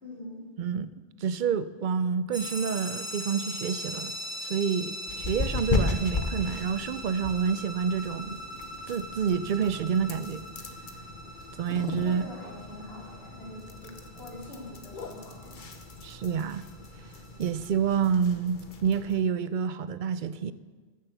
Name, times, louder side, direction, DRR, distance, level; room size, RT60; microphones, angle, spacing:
voice 1, 0.0-0.4 12.0-15.5, left 1 dB, 75° left, -5 dB, 3.8 m, -44 dB
voice 2, 0.6-0.9 1.2-4.1 4.4-8.4 8.9-10.4 11.6-12.2 16.0-16.6 17.4-20.5, right 7 dB, 60° right, 14 dB, 0.6 m, -28 dB
sound 1, 2.3-17.7, equal, 10° left, 2.9 m, -41 dB
sound 2, 5.1-19.2, left 4 dB, 55° left, 1.1 m, -36 dB
14.0 x 7.4 x 6.9 m, 1.4 s
omnidirectional pair, 1.0 m